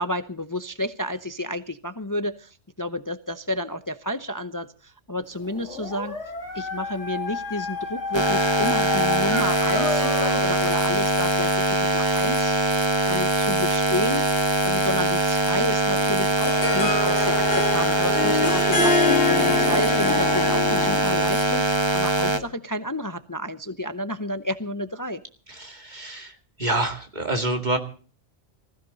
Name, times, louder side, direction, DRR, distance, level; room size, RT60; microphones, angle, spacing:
voice 1, 0.0-6.2 6.5-11.5 11.8-12.5 13.1-14.3 14.6-25.2, left 1 dB, 20° left, 11 dB, 0.6 m, -30 dB
Dog, 5.4-10.5, left 4 dB, 80° left, 3.3 m, -30 dB
sound 1, 8.1-22.4, right 1 dB, 25° right, 1.4 m, -22 dB
Harp, 16.0-21.3, left 4 dB, 55° left, 1.8 m, -25 dB
voice 2, 25.5-27.8, right 2 dB, 40° right, 5 dB, 2.4 m, -27 dB
20.0 x 15.5 x 4.0 m, 0.40 s
omnidirectional pair, 1.2 m